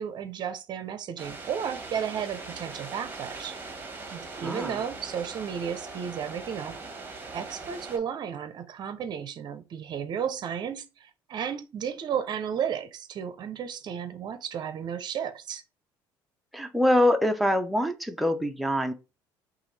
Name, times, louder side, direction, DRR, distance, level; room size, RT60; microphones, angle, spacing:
voice 1, 0.0-3.6 4.1-6.8 7.3-15.6, right 8 dB, 50° right, 0.6 m, -33 dB
sound 1, 1.2-8.0, right 3 dB, 25° right, 1.2 m, -41 dB
voice 2, 4.4-4.8 16.5-18.9, left 1 dB, ahead, 0.6 m, -24 dB
5.8 x 2.4 x 3.2 m
supercardioid pair, 85°, 9 cm